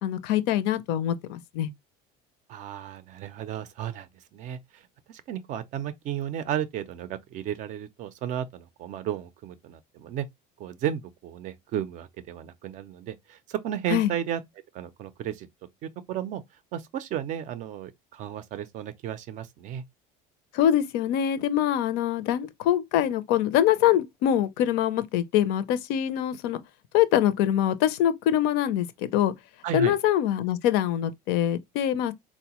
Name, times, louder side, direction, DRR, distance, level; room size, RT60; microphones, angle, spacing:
voice 1, 0.0-1.7 13.9-14.1 20.5-26.6 26.9-29.3 29.7-32.1, left 11 dB, 70° left, 0.5 m, -24 dB
voice 2, 2.5-10.3 10.6-14.4 14.7-15.5 15.8-16.4 16.7-19.8 29.6-29.9, right 10 dB, 45° right, 0.4 m, -34 dB
3.8 x 2.1 x 2.8 m
cardioid pair, 155°, 18 cm